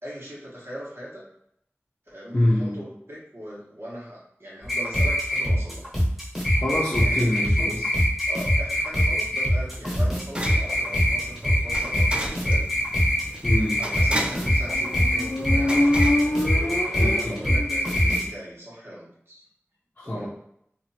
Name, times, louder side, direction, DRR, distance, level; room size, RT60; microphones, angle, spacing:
voice 1, 0.0-1.2 2.1-5.8 7.0-7.9 8.3-12.7 13.8-15.9 16.9-19.4 20.0-20.3, equal, 55° right, -6 dB, 1.2 m, -40 dB
voice 2, 2.3-2.8 6.5-7.8 13.4-13.8 17.0-17.4 20.0-20.3, left 1 dB, 35° left, -6 dB, 0.7 m, -25 dB
sound 1, 4.6-18.2, equal, 5° right, 1.0 m, -23 dB
sound 2, 8.8-17.1, right 1 dB, 20° right, 0.3 m, -36 dB
Motorcycle, 14.5-18.2, left 1 dB, 75° left, 0.6 m, -26 dB
2.8 x 2.5 x 2.8 m, 0.72 s
wide cardioid pair, 45°, 5 cm